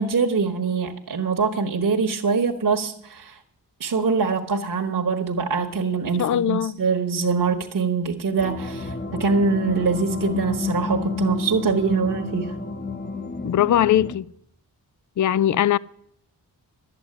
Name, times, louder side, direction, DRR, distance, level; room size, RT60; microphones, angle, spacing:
voice 1, 0.0-3.4 3.8-12.5, right 5 dB, 50° right, 1.4 m, -23 dB
voice 2, 6.2-6.7 13.4-14.3 15.2-15.8, left 11 dB, 50° left, 0.5 m, -20 dB
sound 1, 8.4-14.2, left 3 dB, 25° left, 1.1 m, -30 dB
11.0 x 8.0 x 9.9 m
cardioid pair, 50°, 40 cm